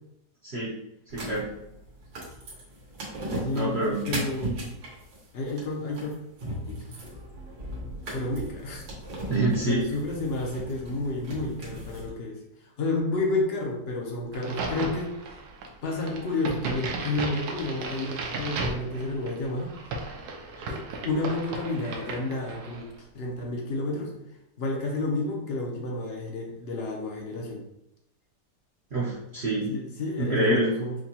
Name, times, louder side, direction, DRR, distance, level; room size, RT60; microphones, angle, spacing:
voice 1, 0.4-0.7 1.1-1.5 3.3-4.0 9.3-9.8 28.9-29.7 30.2-30.7, right 1 dB, 55° right, -7 dB, 0.7 m, -26 dB
sound 1, 1.1-12.1, right 1 dB, 85° right, 1.7 m, -38 dB
voice 2, 3.4-4.7 5.3-6.1 6.7-6.9 8.1-8.8 9.6-15.1 15.8-20.0 20.7-24.1 24.6-27.6 29.7-31.0, left 2 dB, 60° left, -1 dB, 0.6 m, -31 dB
Crack, 14.3-22.9, right 3 dB, 70° right, 1.0 m, -35 dB
4.9 x 2.2 x 2.8 m, 0.83 s
omnidirectional pair, 1.9 m